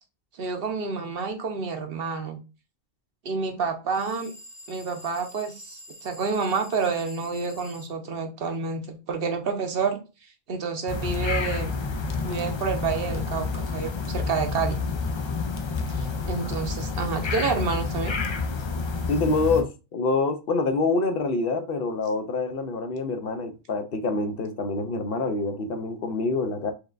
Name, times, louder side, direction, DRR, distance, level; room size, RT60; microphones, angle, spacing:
voice 1, 0.4-2.4 3.2-4.3 4.7-10.0 10.5-11.7 12.2-14.8 16.0-18.2, right 5 dB, 65° right, 1.0 m, -29 dB
sound 1, 3.9-7.9, left 1 dB, 25° left, 1.0 m, -46 dB
sound 2, 10.9-19.6, left 4 dB, 45° left, 0.4 m, -29 dB
voice 2, 19.1-26.7, left 3 dB, 65° left, 0.8 m, -26 dB
4.5 x 3.2 x 2.4 m
omnidirectional pair, 1.1 m